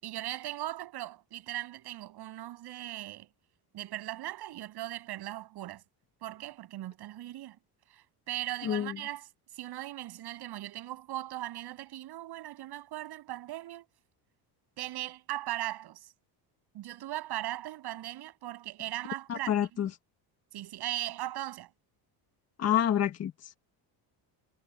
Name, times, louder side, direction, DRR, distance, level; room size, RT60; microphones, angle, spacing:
voice 1, 0.0-3.3 3.7-5.8 6.2-7.6 7.9-9.3 9.5-13.8 14.8-16.1 16.7-19.5 20.5-21.7, right 14 dB, 60° right, 7.9 m, -38 dB
voice 2, 8.6-9.0 19.3-19.9 22.6-23.6, left 10 dB, 35° left, 1.6 m, -28 dB
cardioid pair, 150°, 44 cm